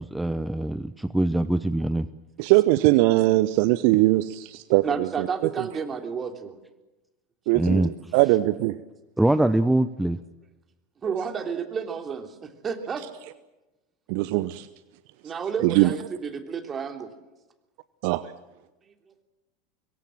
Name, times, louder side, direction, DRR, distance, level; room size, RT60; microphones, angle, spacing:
voice 1, 0.0-2.1 7.5-7.9 9.2-10.2, right 1 dB, 5° right, 13 dB, 0.8 m, -23 dB
voice 2, 2.4-5.3 7.5-8.8 14.1-14.7 15.6-15.9 18.0-18.3, right 18 dB, 55° right, 15 dB, 0.8 m, -21 dB
voice 3, 4.8-6.6 11.0-13.0 15.2-17.1, right 6 dB, 25° right, 6 dB, 3.2 m, -31 dB
25.5 x 22.5 x 7.6 m, 1.0 s
figure-of-eight pair, 80°, 0 cm